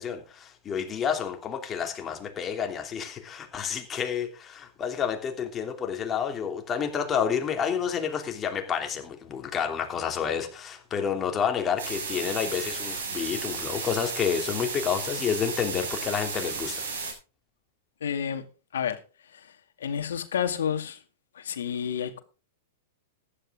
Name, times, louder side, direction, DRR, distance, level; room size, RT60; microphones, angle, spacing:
voice 1, 0.0-16.9, left 7 dB, 25° left, 3.0 m, -29 dB
sound 1, 11.8-17.1, right 5 dB, 75° right, 6.6 m, -34 dB
voice 2, 18.0-18.4 18.7-19.0 19.8-21.0 21.4-22.2, left 8 dB, 85° left, 2.0 m, -29 dB
15.0 x 11.0 x 3.7 m
hypercardioid pair, 125°, 0 cm